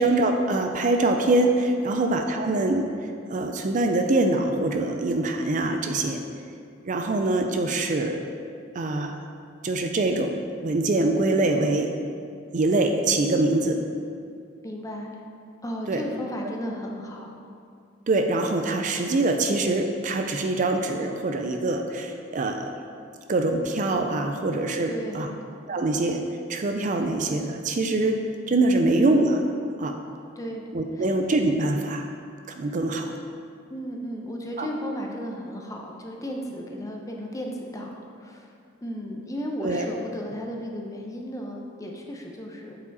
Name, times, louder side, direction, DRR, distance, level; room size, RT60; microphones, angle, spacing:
voice 1, 0.0-2.9 3.3-6.2 6.8-8.2 8.7-9.2 9.6-11.9 12.5-13.8 15.9-16.0 18.1-22.7 23.3-25.3 25.7-26.2 26.5-28.2 28.5-29.4 29.8-30.0 30.7-32.1 32.5-33.1 34.6-34.7 39.6-39.9, right 2 dB, 40° right, 5 dB, 0.4 m, -24 dB
voice 2, 14.6-15.2 15.6-17.3 24.9-25.4 28.8-29.0 30.4-30.7 30.9-31.1 33.7-38.5 38.8-42.8, equal, 15° left, 0 dB, 0.7 m, -34 dB
8.2 x 4.9 x 4.0 m, 2.4 s
head